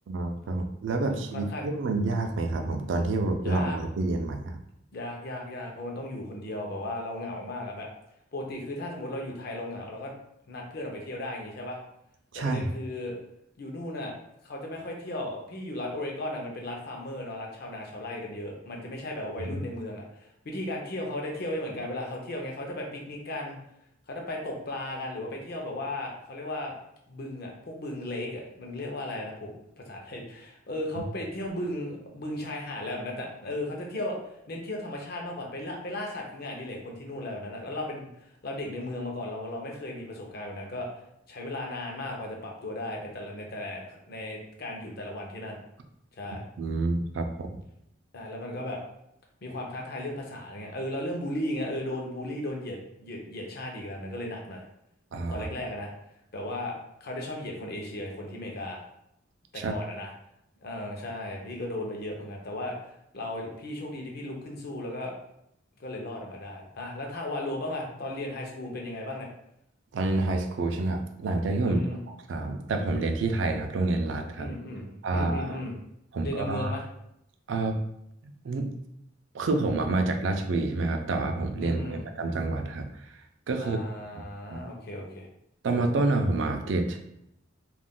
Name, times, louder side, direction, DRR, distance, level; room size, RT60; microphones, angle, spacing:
voice 1, 0.1-4.6 12.3-12.7 19.5-19.6 46.6-47.5 55.1-55.5 59.5-59.8 69.9-71.8 72.3-74.5 75.0-75.6 76.1-76.7 77.5-77.8 78.2-78.7 79.3-82.8 83.5-83.8 84.5-84.6 85.6-87.0, right 2 dB, 65° right, 5 dB, 0.4 m, -28 dB
voice 2, 1.0-1.7 3.4-3.8 4.9-7.9 8.3-10.1 10.5-11.8 12.3-13.2 13.6-14.1 14.4-23.6 24.1-26.7 27.1-34.2 34.5-40.9 41.3-45.6 46.2-46.4 48.1-48.8 49.4-54.6 55.3-55.9 56.3-56.8 57.0-58.8 59.5-60.1 60.6-65.1 65.8-69.3 71.6-72.0 74.4-75.7 76.2-76.8 81.6-82.1 83.6-85.3, left 1 dB, 50° left, 0 dB, 0.6 m, -36 dB
2.4 x 2.1 x 3.6 m, 0.78 s
head